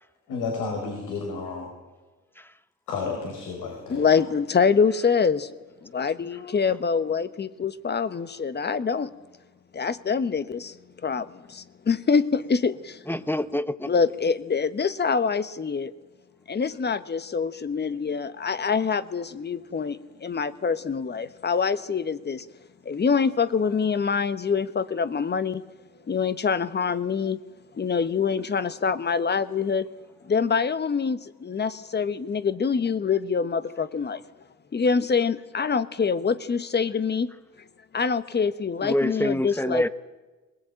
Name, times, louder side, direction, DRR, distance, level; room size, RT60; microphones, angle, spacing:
voice 1, 0.3-1.7 2.9-4.1, left 4 dB, 85° left, 4.8 m, -31 dB
voice 2, 3.9-5.5 5.8-9.1 9.7-10.8 11.0-13.0 13.8-15.9 16.5-22.5 22.8-25.6 26.1-27.4 27.7-29.9 30.2-34.2 34.7-37.3 37.9-39.9, left 5 dB, 35° left, 1.3 m, -25 dB
voice 3, 13.1-13.9 38.8-39.9, left 1 dB, 5° left, 1.0 m, -26 dB
21.5 x 20.0 x 9.0 m
cardioid pair, 90°, 30 cm